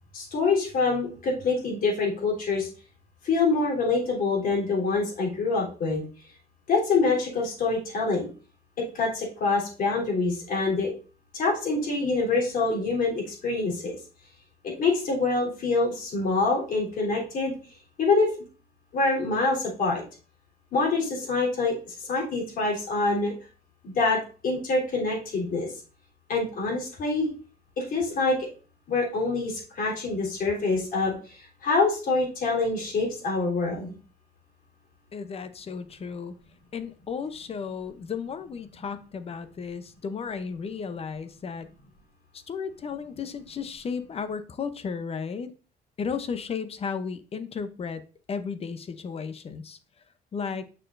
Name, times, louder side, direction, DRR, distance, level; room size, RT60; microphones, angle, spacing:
voice 1, 0.1-2.7 3.2-6.0 6.7-8.3 8.9-10.9 11.3-13.8 14.6-17.5 18.0-18.3 18.9-20.0 20.7-23.3 23.8-25.7 26.3-27.3 27.8-28.4 28.9-31.2 31.6-33.9, left 3 dB, 55° left, 3.4 m, -25 dB
voice 2, 35.1-36.3 36.7-41.7 42.5-45.5 46.0-48.0 48.3-49.8 50.3-50.7, left 6 dB, 35° left, 0.7 m, -34 dB
6.8 x 6.0 x 2.6 m
cardioid pair, 110°, 17 cm